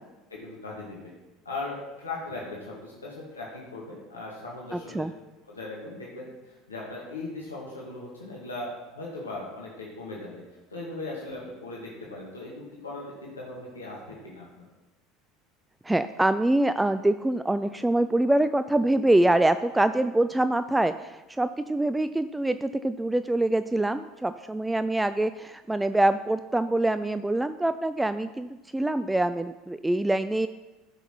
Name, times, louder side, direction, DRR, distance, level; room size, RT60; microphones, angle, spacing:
voice 1, 0.3-1.1 1.4-5.0 5.5-10.4 10.7-14.7, left 2 dB, 85° left, -4 dB, 1.8 m, -38 dB
voice 2, 4.7-5.1 15.8-30.5, right 1 dB, 10° right, 11 dB, 0.4 m, -25 dB
13.5 x 5.9 x 4.5 m, 1.1 s
figure-of-eight pair, 70°, 0 cm